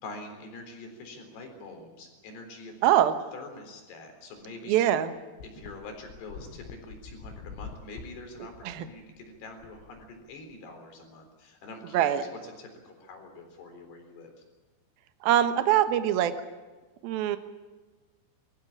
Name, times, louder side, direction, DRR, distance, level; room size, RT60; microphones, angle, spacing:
voice 1, 0.0-4.8 5.4-14.3, left 2 dB, 55° left, 5 dB, 5.7 m, -45 dB
voice 2, 2.8-3.1 4.7-5.1 8.6-8.9 11.9-12.2 15.2-16.3 17.0-17.4, right 11 dB, 70° right, 9 dB, 2.4 m, -23 dB
sound 1, 4.4-4.5 4.8-4.9 5.4-10.6, left 5 dB, 80° left, 4.4 m, -46 dB
23.0 x 15.0 x 9.8 m, 1.3 s
omnidirectional pair, 5.7 m